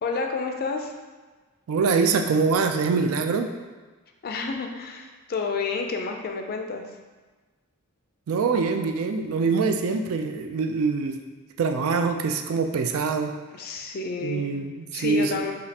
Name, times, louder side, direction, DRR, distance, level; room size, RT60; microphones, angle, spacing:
voice 1, 0.0-0.9 4.2-6.8 13.5-14.5 14.9-15.5, left 4 dB, 45° left, 4 dB, 0.4 m, -30 dB
voice 2, 1.7-3.5 8.3-11.2 11.6-13.3 14.2-15.4, right 4 dB, 70° right, 6 dB, 0.3 m, -24 dB
5.0 x 2.4 x 2.8 m, 1.3 s
head